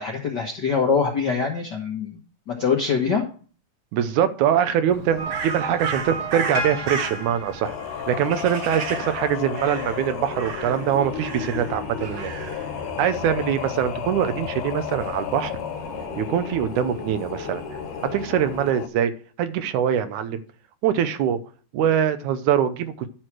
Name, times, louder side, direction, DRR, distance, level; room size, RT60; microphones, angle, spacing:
voice 1, 0.0-2.2 2.5-3.2, left 5 dB, 60° left, 1.1 m, -23 dB
voice 2, 3.9-7.8 8.1-12.3 13.0-15.5 16.2-17.6 18.1-19.1 19.4-20.4 20.8-21.4 21.7-23.1, right 9 dB, 80° right, 2.1 m, -23 dB
Crow, 4.9-18.6, right 5 dB, 60° right, 1.9 m, -36 dB
sound 1, 5.2-8.5, right 2 dB, 30° right, 1.6 m, -32 dB
Singing, 7.6-18.9, left 9 dB, 80° left, 2.3 m, -33 dB
11.0 x 4.7 x 6.0 m
omnidirectional pair, 3.6 m